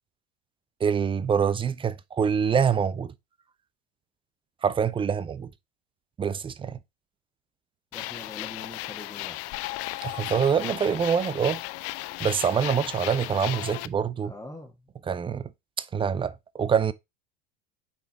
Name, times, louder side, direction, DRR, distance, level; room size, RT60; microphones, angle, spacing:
voice 1, 0.8-3.1 4.6-5.5 6.2-6.8 10.0-11.6 12.2-14.3 15.1-15.5 15.8-16.9, right 7 dB, 15° right, 0.4 m, -25 dB
sound 1, 7.9-13.9, left 18 dB, 45° left, 0.4 m, -35 dB
voice 2, 7.9-9.5 14.2-14.7, left 2 dB, 10° left, 1.5 m, -43 dB
6.1 x 3.9 x 4.0 m
hypercardioid pair, 90°, 33 cm